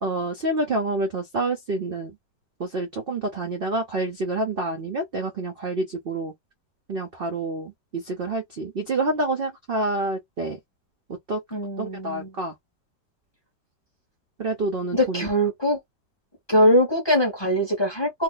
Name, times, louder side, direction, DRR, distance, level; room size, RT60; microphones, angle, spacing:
voice 1, 0.0-2.2 2.6-6.3 6.9-10.6 11.3-11.4 11.8-12.5 14.4-15.3, right 2 dB, 65° right, 0.5 m, -28 dB
voice 2, 11.5-12.4 14.9-15.8 16.5-18.2, equal, 20° left, 0.8 m, -22 dB
2.9 x 2.2 x 3.9 m
omnidirectional pair, 1.9 m